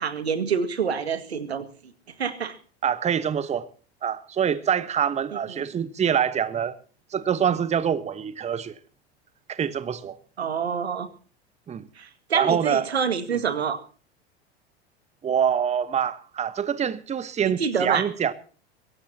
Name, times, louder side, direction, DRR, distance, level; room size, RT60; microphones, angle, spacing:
voice 1, 0.0-1.7 2.2-2.6 5.5-5.6 10.4-11.1 12.0-13.8 17.4-18.1, right 6 dB, 80° right, 2.1 m, -27 dB
voice 2, 2.8-3.7 4.0-6.8 7.1-8.8 9.5-10.2 11.7-11.9 12.3-12.8 13.3-13.4 15.2-18.3, right 8 dB, 20° right, 1.2 m, -25 dB
22.5 x 17.0 x 2.9 m
figure-of-eight pair, 80°, 31 cm